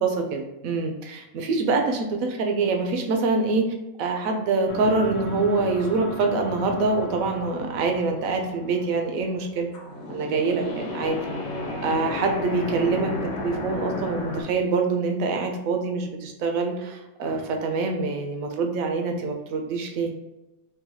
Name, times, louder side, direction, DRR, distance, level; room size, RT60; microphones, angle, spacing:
voice 1, 0.0-9.7 10.1-11.2 11.8-13.1 13.4-20.1, right 3 dB, 80° right, 4 dB, 1.0 m, -25 dB
sound 1, 4.7-9.5 9.7-14.4, left 1 dB, 80° left, 1.1 m, -34 dB
3.8 x 2.2 x 2.8 m, 0.96 s
omnidirectional pair, 1.4 m